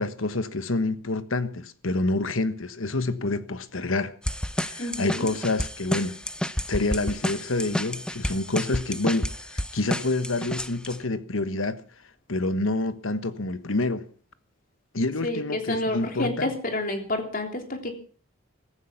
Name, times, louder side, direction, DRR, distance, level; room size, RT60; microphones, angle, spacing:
voice 1, 0.0-4.2 4.6-6.2 6.7-11.8 12.3-14.1 14.9-16.5, left 2 dB, 75° left, 1.3 m, -27 dB
sound 1, 4.2-11.0, equal, 5° left, 0.7 m, -31 dB
voice 2, 4.8-5.3 15.2-17.9, left 2 dB, 40° left, 3.3 m, -29 dB
15.5 x 14.5 x 5.9 m
head